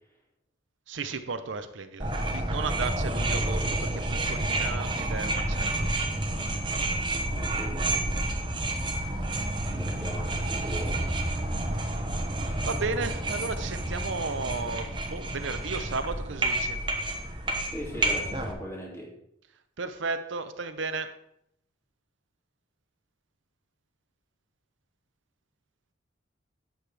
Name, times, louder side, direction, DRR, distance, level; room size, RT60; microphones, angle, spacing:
voice 1, 0.9-5.9 12.7-16.8 19.8-21.1, right 4 dB, 80° right, 9 dB, 0.7 m, -34 dB
sound 1, 2.0-18.5, right 1 dB, 25° right, 1.0 m, -29 dB
voice 2, 7.3-8.3 9.7-11.0 17.7-19.1, equal, 15° left, -4 dB, 2.6 m, -39 dB
11.5 x 7.7 x 3.4 m, 0.75 s
head